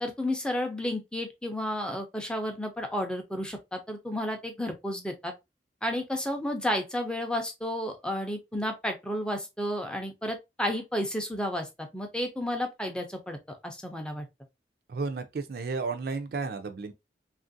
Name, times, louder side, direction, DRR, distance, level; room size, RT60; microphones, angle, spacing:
voice 1, 0.0-5.3 5.8-11.7 11.9-13.4 13.6-14.3, left 1 dB, 5° left, 0.4 m, -32 dB
voice 2, 14.9-16.9, right 4 dB, 55° right, 0.4 m, -33 dB
2.9 x 2.5 x 2.5 m
head